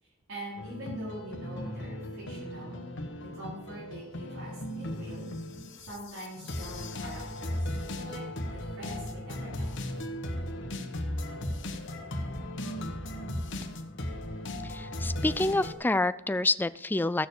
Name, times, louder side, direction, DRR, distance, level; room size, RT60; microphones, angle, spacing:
voice 1, 0.0-2.8 3.2-5.3 5.8-8.2 8.5-9.7, equal, 85° right, -7 dB, 4.5 m, -44 dB
sound 1, 0.6-15.7, left 1 dB, 65° left, 1.4 m, -36 dB
voice 2, 14.6-17.3, left 2 dB, 10° left, 15 dB, 0.3 m, -28 dB
15.0 x 6.8 x 6.6 m, 0.92 s
head